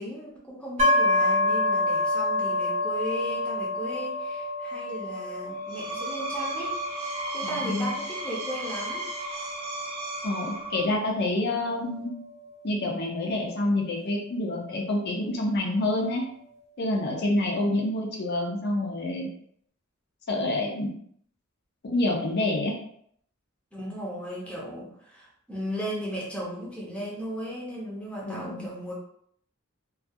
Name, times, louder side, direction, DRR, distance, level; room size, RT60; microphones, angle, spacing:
voice 1, 0.0-9.0 23.7-28.9, equal, 5° left, -4 dB, 0.6 m, -36 dB
sound 1, 0.8-14.5, left 2 dB, 30° right, 0.6 m, -29 dB
Screech, 5.5-11.0, right 1 dB, 85° right, 0.6 m, -35 dB
voice 2, 7.4-7.9 10.2-12.1 12.6-16.2 16.8-19.3 20.3-20.9 21.8-22.7 28.2-28.7, left 1 dB, 50° left, -1 dB, 0.5 m, -27 dB
2.3 x 2.3 x 2.6 m, 0.66 s
head